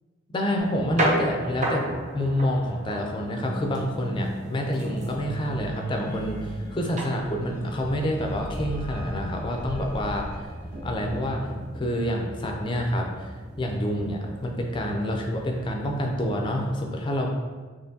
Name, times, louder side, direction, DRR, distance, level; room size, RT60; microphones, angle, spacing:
voice 1, 0.3-1.8 2.1-10.3 10.8-11.4 11.7-17.3, equal, 25° left, 1 dB, 0.4 m, -28 dB
sound 1, 0.6-16.7, right 1 dB, 35° right, 0.5 m, -35 dB
sound 2, 3.2-11.5, right 2 dB, 10° right, 1.0 m, -39 dB
4.3 x 3.0 x 2.7 m, 1.4 s
head